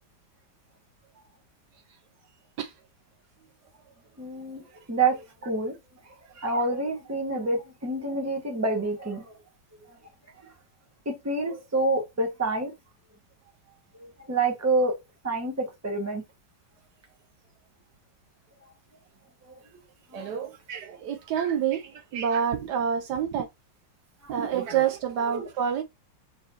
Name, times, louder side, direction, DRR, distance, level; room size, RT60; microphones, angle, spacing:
voice 1, 4.2-4.6 4.9-5.7 6.4-9.2 11.0-12.7 13.9-14.9 15.2-16.2 20.1-20.3 25.3-25.4, right 2 dB, 10° right, 0.9 m, -27 dB
voice 2, 20.1-23.5 24.3-25.8, right 8 dB, 75° right, 1.1 m, -28 dB
4.1 x 3.8 x 2.8 m
omnidirectional pair, 2.0 m